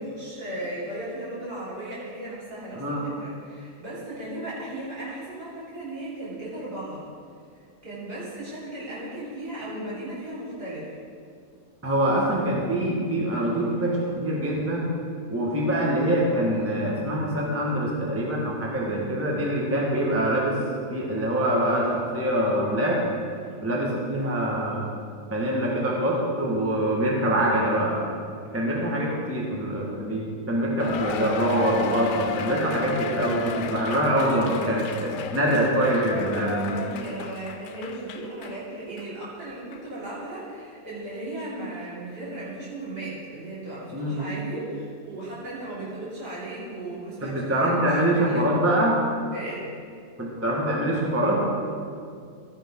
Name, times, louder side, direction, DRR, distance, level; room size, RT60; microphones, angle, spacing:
voice 1, 0.0-7.0 7.8-10.9 23.4-23.7 36.5-48.6 49.3-49.7, right 1 dB, 70° right, -9 dB, 4.1 m, -36 dB
voice 2, 11.8-14.9 15.3-20.6 20.9-23.0 23.6-24.9 25.3-28.0 28.5-36.8 43.9-44.2 47.2-49.0 50.2-51.4, right 1 dB, 10° right, -3 dB, 1.4 m, -24 dB
Cheering, 30.8-38.6 39.0-39.1 39.7-39.8, left 7 dB, 80° left, 1.2 m, -34 dB
13.5 x 10.0 x 3.8 m, 2.3 s
omnidirectional pair, 1.8 m